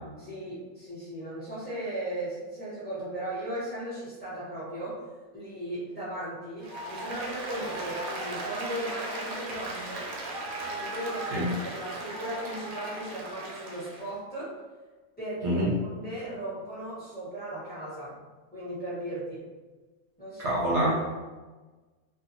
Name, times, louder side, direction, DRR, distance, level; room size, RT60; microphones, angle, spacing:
voice 1, 0.2-4.9 5.3-10.1 10.7-14.5 15.2-15.6 15.9-18.2 18.5-19.4 20.2-20.4, right 1 dB, 10° left, -10 dB, 0.9 m, -37 dB
Applause, 6.6-14.1, right 2 dB, 85° right, 1.1 m, -37 dB
voice 2, 15.4-15.8 20.4-20.9, equal, 60° right, -7 dB, 0.9 m, -25 dB
2.8 x 2.4 x 2.6 m, 1.3 s
omnidirectional pair, 1.5 m